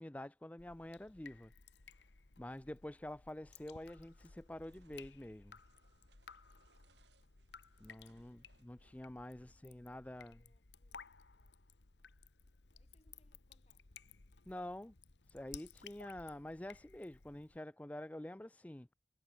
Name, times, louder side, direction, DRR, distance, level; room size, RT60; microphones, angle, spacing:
voice 1, 0.0-1.5 2.4-5.6 7.8-10.4 14.5-14.9 15.3-18.9, left 1 dB, 10° left, 0.4 m, -48 dB
Drip, 0.6-17.6, left 5 dB, 90° left, 1.3 m, -59 dB
sound 1, 3.8-9.3, right 4 dB, 90° right, 4.8 m, -75 dB
voice 2, 8.0-8.8 9.2-11.6 12.7-13.9, left 1 dB, 35° left, 6.0 m, -80 dB
head